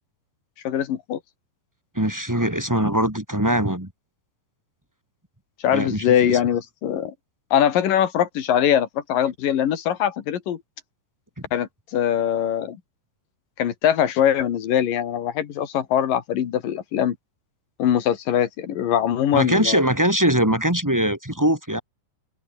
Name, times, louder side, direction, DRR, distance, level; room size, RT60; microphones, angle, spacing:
voice 1, 0.6-1.2 5.6-7.1 7.5-10.6 11.5-12.8 13.6-17.2 17.8-19.8, left 10 dB, 60° left, 3.2 m, -22 dB
voice 2, 1.9-3.9 5.7-6.4 19.3-21.8, right 1 dB, 5° right, 1.6 m, -22 dB
omnidirectional pair, 4.9 m